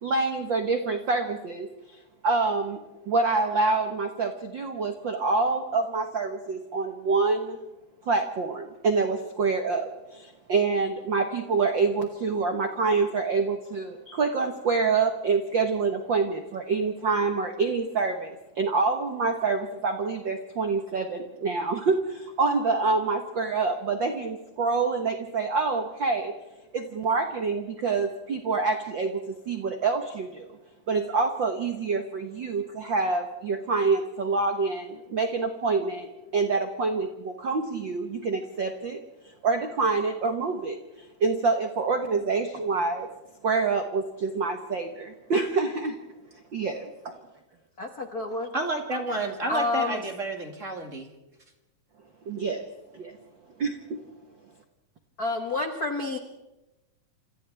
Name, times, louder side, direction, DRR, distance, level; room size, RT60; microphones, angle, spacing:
voice 1, 0.0-2.8 3.0-7.6 8.0-26.3 26.7-30.6 30.9-36.1 36.3-43.1 43.4-46.0 46.5-46.9 52.2-52.7 52.9-53.2 53.6-54.0, right 4 dB, 65° right, 5 dB, 1.2 m, -26 dB
voice 2, 47.8-48.5 49.5-50.0 55.2-56.2, left 3 dB, 55° left, 4 dB, 1.0 m, -29 dB
voice 3, 48.5-51.1, right 2 dB, 30° right, 3 dB, 1.8 m, -30 dB
28.0 x 27.0 x 3.5 m, 1.0 s
omnidirectional pair, 4.1 m